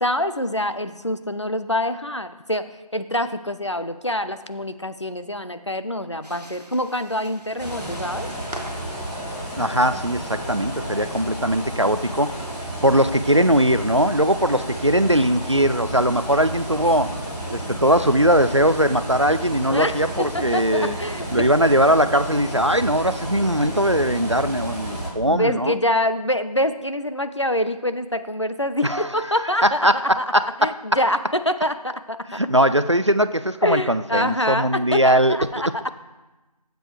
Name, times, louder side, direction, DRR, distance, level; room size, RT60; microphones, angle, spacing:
voice 1, 0.0-8.3 19.7-21.3 25.2-32.2 33.6-35.8, left 1 dB, 45° left, 10 dB, 0.5 m, -25 dB
sound 1, 6.2-12.1, right 1 dB, 85° right, 1.5 m, -44 dB
sound 2, 7.6-25.1, right 1 dB, 90° left, 3.5 m, -31 dB
voice 2, 9.6-12.4 12.8-17.1 17.5-21.0 21.3-25.8 28.8-29.1 29.6-30.7 32.3-35.4, equal, 50° right, 13 dB, 0.4 m, -20 dB
13.0 x 7.6 x 3.4 m, 1.1 s
figure-of-eight pair, 175°, 20 cm